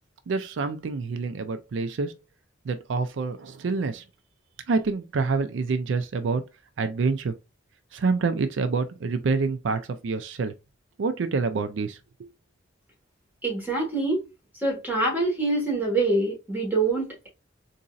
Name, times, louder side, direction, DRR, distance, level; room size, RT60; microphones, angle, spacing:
voice 1, 0.3-2.1 2.6-4.0 4.7-6.4 6.8-7.3 7.9-10.5 11.0-12.3, right 4 dB, 75° right, 0.4 m, -27 dB
voice 2, 13.4-14.2 14.6-17.3, right 2 dB, 10° right, 1.5 m, -25 dB
3.9 x 2.6 x 2.3 m
head